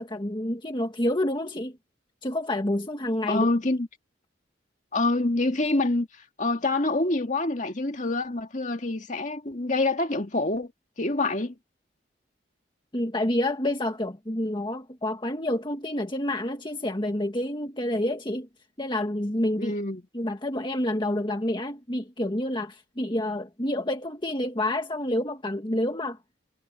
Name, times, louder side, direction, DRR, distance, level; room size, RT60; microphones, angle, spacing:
voice 1, 0.0-1.8 2.2-3.5 12.9-18.5 18.8-19.7 20.1-26.2, left 1 dB, 25° left, 1.7 m, -28 dB
voice 2, 3.3-3.9 4.9-6.1 6.4-10.7 11.0-11.5 19.6-20.0, left 2 dB, 40° left, 2.0 m, -26 dB
head